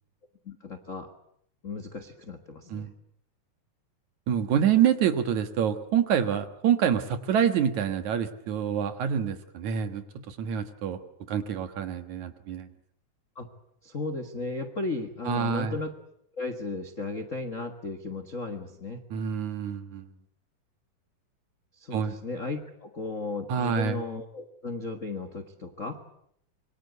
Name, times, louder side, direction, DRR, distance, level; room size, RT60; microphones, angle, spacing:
voice 1, 0.4-1.1 1.6-2.9 13.3-13.5 13.8-15.9 16.3-19.0 21.7-26.0, left 3 dB, 50° left, 8 dB, 0.9 m, -35 dB
voice 2, 4.3-11.0 11.3-12.7 15.3-15.8 19.1-20.1 21.9-22.2 23.5-24.0, right 8 dB, 60° right, 9 dB, 2.6 m, -27 dB
26.0 x 23.5 x 8.2 m, 0.71 s
omnidirectional pair, 4.0 m